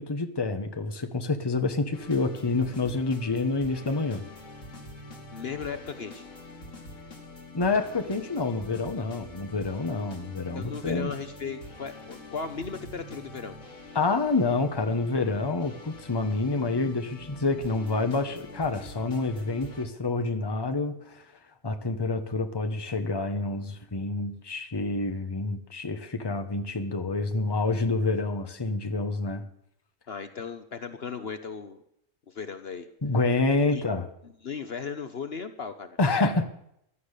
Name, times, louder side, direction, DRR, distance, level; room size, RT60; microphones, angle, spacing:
voice 1, 0.0-4.2 7.5-11.1 13.9-21.2 21.6-29.4 33.0-34.1 36.0-36.5, left 3 dB, 20° left, 8 dB, 1.2 m, -28 dB
sound 1, 1.9-19.9, left 2 dB, 80° left, 2.9 m, -45 dB
voice 2, 5.3-6.3 10.6-13.6 30.1-31.8 32.3-32.9 33.7-33.8 34.2-36.0, left 6 dB, 55° left, 9 dB, 1.2 m, -36 dB
15.5 x 12.0 x 6.7 m, 0.74 s
omnidirectional pair, 1.3 m